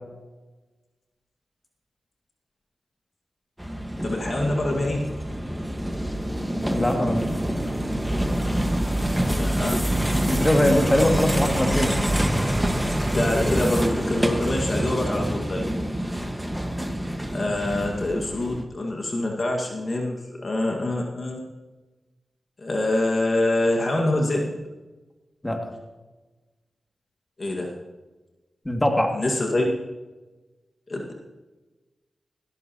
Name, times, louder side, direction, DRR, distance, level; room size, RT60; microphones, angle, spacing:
sound 1, 3.6-18.6, right 1 dB, 5° right, 1.6 m, -26 dB
voice 1, 4.0-5.1 9.4-9.8 13.1-15.7 17.3-21.4 22.6-24.6 27.4-27.7 29.1-29.7 30.9-31.1, left 1 dB, 50° left, 0 dB, 1.9 m, -25 dB
voice 2, 6.7-7.2 10.2-12.0 25.4-25.7 28.6-29.2, left 1 dB, 20° left, 2 dB, 2.4 m, -22 dB
15.5 x 13.0 x 3.0 m, 1.2 s
cardioid pair, 40°, 0 cm